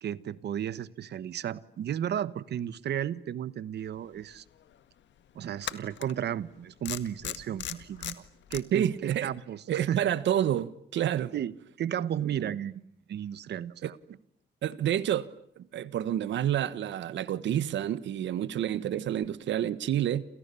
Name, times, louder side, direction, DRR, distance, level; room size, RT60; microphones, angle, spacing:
voice 1, 0.0-4.4 5.3-8.2 8.5-10.0 11.3-14.0, right 10 dB, 65° right, 1.2 m, -34 dB
sound 1, 4.2-4.3 5.6-6.1 6.9-8.6, left 11 dB, 85° left, 1.8 m, -37 dB
voice 2, 8.7-9.3 9.7-11.3 13.8-13.9 14.6-15.3 15.6-20.2, right 11 dB, 90° right, 1.3 m, -29 dB
29.0 x 29.0 x 7.0 m
wide cardioid pair, 155°, 18 cm